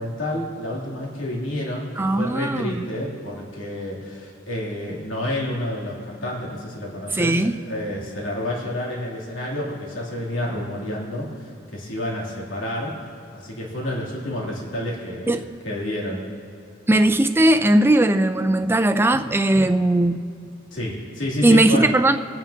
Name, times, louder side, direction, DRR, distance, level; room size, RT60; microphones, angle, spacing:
voice 1, 0.0-13.0 13.3-15.3 15.6-16.2 20.7-21.9, left 1 dB, 90° left, -5 dB, 3.0 m, -29 dB
voice 2, 2.0-2.9 7.1-7.6 15.3-15.5 16.9-20.2 21.4-22.2, right 1 dB, 10° right, 9 dB, 0.4 m, -18 dB
25.5 x 9.2 x 2.9 m, 2.4 s
head